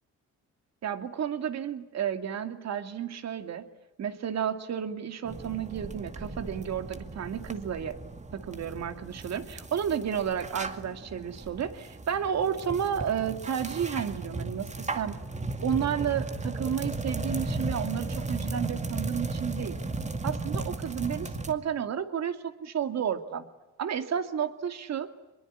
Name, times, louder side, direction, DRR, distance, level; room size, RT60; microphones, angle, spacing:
voice 1, 0.8-3.6 4.0-8.0 8.3-15.2 15.6-19.8 20.2-23.5 23.8-25.1, right 8 dB, 60° right, 8 dB, 2.4 m, -32 dB
sound 1, 5.3-21.5, right 2 dB, 25° right, 2.2 m, -35 dB
24.5 x 22.0 x 9.9 m, 0.99 s
cardioid pair, 90°, 30 cm